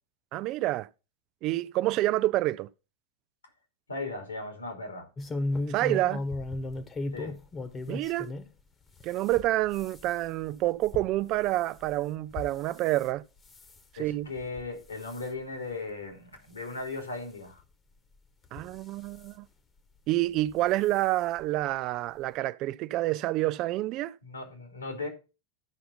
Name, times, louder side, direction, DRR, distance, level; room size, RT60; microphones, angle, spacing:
voice 1, 0.3-0.9 1.4-2.7 5.7-6.2 7.9-8.3 9.0-13.2 14.0-14.3 18.5-19.5 20.1-24.1, right 16 dB, 45° right, 0.5 m, -28 dB
voice 2, 3.9-5.1 7.1-7.4 14.0-17.6 24.2-25.1, left 3 dB, 85° left, 2.9 m, -37 dB
sound 1, 5.2-8.5 8.9-13.1 13.5-13.8 14.4-14.7 15.0-15.3 15.9-16.0 16.3-16.4 17.6-17.7 18.4-19.3 20.4-20.6 21.0-21.1 21.4-21.5, left 2 dB, 25° left, 1.2 m, -36 dB
13.0 x 5.6 x 4.0 m
figure-of-eight pair, 90°, 0 cm